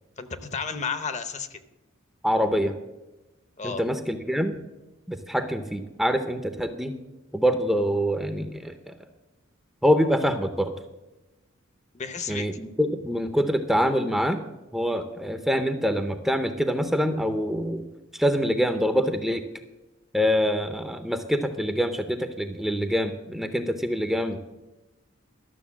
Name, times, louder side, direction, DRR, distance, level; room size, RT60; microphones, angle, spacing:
voice 1, 0.2-1.6 3.6-3.8 11.9-12.5, left 5 dB, 35° left, 11 dB, 0.7 m, -32 dB
voice 2, 2.2-2.7 3.6-4.6 5.1-6.9 7.3-8.9 9.8-10.7 12.3-14.4 14.7-17.9 18.1-19.4 20.1-24.4, equal, ahead, 7 dB, 0.6 m, -25 dB
12.5 x 6.6 x 7.2 m, 1.0 s
head